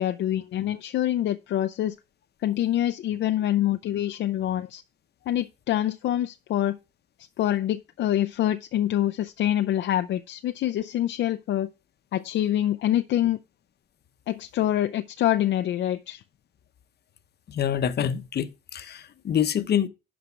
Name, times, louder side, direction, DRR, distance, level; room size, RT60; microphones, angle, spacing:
voice 1, 0.0-1.9 2.4-4.8 5.3-6.8 7.4-11.7 12.1-13.4 14.3-16.2, left 12 dB, 70° left, 0.5 m, -25 dB
voice 2, 17.5-19.9, left 9 dB, 55° left, 0.9 m, -26 dB
11.0 x 5.1 x 4.6 m
cardioid pair, 90°, 20 cm